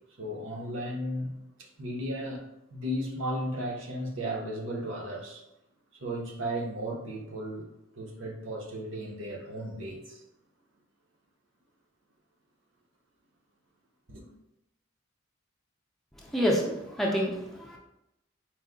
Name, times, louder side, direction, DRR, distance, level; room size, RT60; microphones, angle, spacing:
voice 1, 0.2-2.4 2.7-5.4 5.9-7.7 7.9-10.2 14.1-14.3, equal, 70° right, 0 dB, 0.7 m, -35 dB
voice 2, 16.2-17.8, equal, ahead, -2 dB, 0.5 m, -28 dB
4.6 x 2.1 x 3.7 m, 0.88 s
head